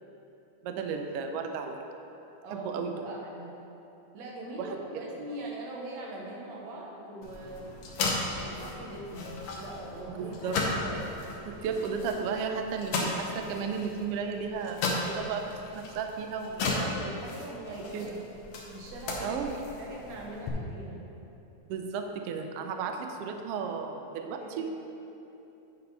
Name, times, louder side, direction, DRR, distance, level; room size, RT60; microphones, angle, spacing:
voice 1, 0.6-1.9 2.5-2.9 4.6-5.0 10.1-10.6 11.4-16.9 17.9-18.1 19.2-19.5 21.7-24.7, right 5 dB, 90° right, 5 dB, 1.3 m, -34 dB
voice 2, 2.4-3.5 4.1-7.7 8.3-10.4 10.7-11.1 16.6-18.4 18.7-21.1 22.7-22.9 24.3-24.7, right 1 dB, 70° right, -2 dB, 2.3 m, -41 dB
sound 1, 7.2-20.5, left 3 dB, 70° left, 2.0 m, -36 dB
9.8 x 4.2 x 5.3 m, 3.0 s
omnidirectional pair, 3.3 m